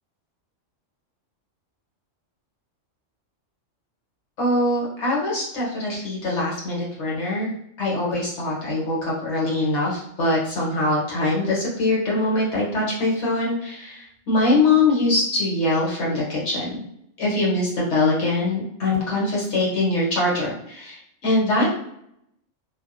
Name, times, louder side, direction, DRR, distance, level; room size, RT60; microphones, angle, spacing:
voice 1, 4.4-7.5 7.8-16.8 17.2-21.7, left 2 dB, 65° left, -5 dB, 1.2 m, -23 dB
2.5 x 2.1 x 2.4 m, 0.75 s
omnidirectional pair, 1.3 m